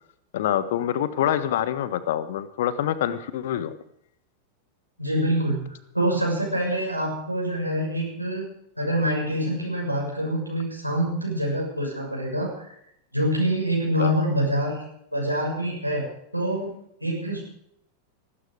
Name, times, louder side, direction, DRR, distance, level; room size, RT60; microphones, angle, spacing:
voice 1, 0.3-3.7 14.0-14.1, left 11 dB, 55° left, 14 dB, 1.3 m, -26 dB
voice 2, 5.0-8.5 8.8-12.7 13.1-14.8 15.1-17.4, equal, 90° right, -3 dB, 6.6 m, -26 dB
18.0 x 16.0 x 5.0 m, 0.73 s
figure-of-eight pair, 90°, 0 cm